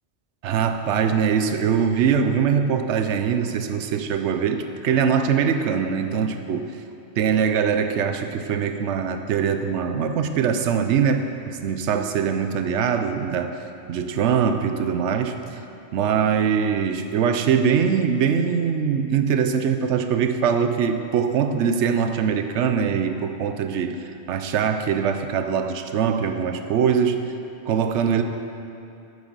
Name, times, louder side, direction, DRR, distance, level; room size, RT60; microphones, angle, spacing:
voice 1, 0.4-6.7 7.2-13.6 13.9-15.6 15.9-27.2 27.7-28.2, right 7 dB, 90° right, 7 dB, 0.9 m, -22 dB
8.5 x 8.1 x 4.0 m, 2.7 s
omnidirectional pair, 1.2 m